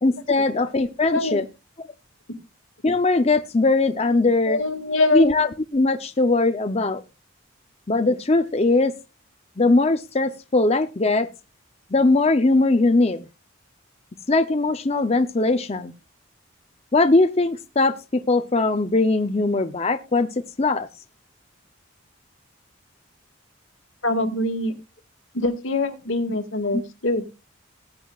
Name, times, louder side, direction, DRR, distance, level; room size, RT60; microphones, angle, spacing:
voice 1, 0.0-1.4 2.8-4.6 5.1-7.0 7.9-8.9 9.6-11.3 11.9-13.3 14.3-15.9 16.9-20.3 20.6-20.9, left 2 dB, 30° left, 8 dB, 0.7 m, -20 dB
voice 2, 4.5-5.2 24.0-24.7 25.3-27.2, left 2 dB, 75° left, 6 dB, 2.1 m, -23 dB
19.5 x 9.2 x 2.4 m, 0.28 s
head